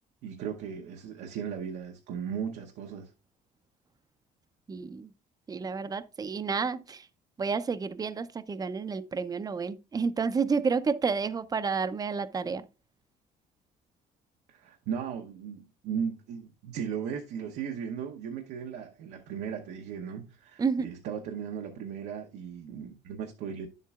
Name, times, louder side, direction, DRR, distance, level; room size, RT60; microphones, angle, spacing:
voice 1, 0.2-3.1 14.5-23.7, right 7 dB, 80° right, 0.9 m, -37 dB
voice 2, 4.7-5.1 5.5-7.1 7.4-12.7 20.6-20.9, right 5 dB, 20° right, 0.5 m, -30 dB
10.0 x 7.5 x 2.4 m
cardioid pair, 110°, 17 cm